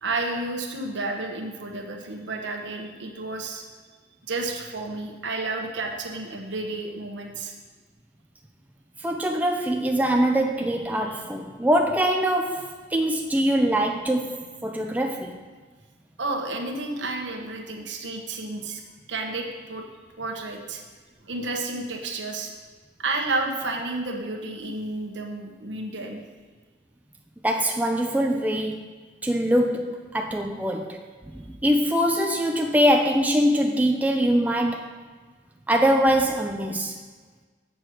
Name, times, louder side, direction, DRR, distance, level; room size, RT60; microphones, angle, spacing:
voice 1, 0.0-3.6 4.3-7.5 11.1-11.2 16.2-18.8 19.1-19.8 20.2-20.8 21.2-22.5 23.0-26.2, right 2 dB, 75° right, 2 dB, 1.1 m, -31 dB
voice 2, 9.0-15.4 27.4-28.8 29.2-31.0 31.3-34.9 35.7-37.0, equal, 10° right, 2 dB, 0.4 m, -23 dB
7.7 x 6.5 x 4.5 m, 1.4 s
head